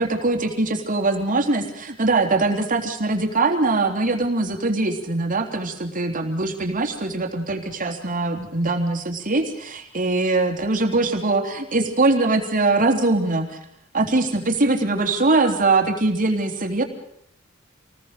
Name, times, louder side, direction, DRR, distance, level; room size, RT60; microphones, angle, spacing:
voice 1, 0.0-13.6 13.9-16.8, right 2 dB, 40° right, 4 dB, 3.5 m, -22 dB
28.0 x 21.0 x 6.8 m, 0.74 s
head